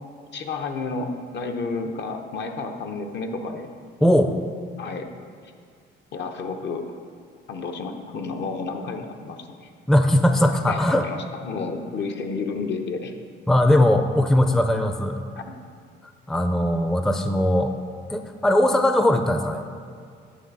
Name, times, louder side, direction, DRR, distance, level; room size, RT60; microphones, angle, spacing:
voice 1, 0.3-3.7 4.8-5.1 6.1-6.9 7.5-9.7 10.7-13.1 15.4-15.6, left 4 dB, 60° left, 5 dB, 0.8 m, -31 dB
voice 2, 4.0-4.3 9.9-11.1 13.5-15.2 16.3-17.7 18.1-19.6, left 1 dB, ahead, 7 dB, 0.4 m, -19 dB
9.5 x 3.3 x 6.6 m, 2.2 s
cardioid pair, 90°, 20 cm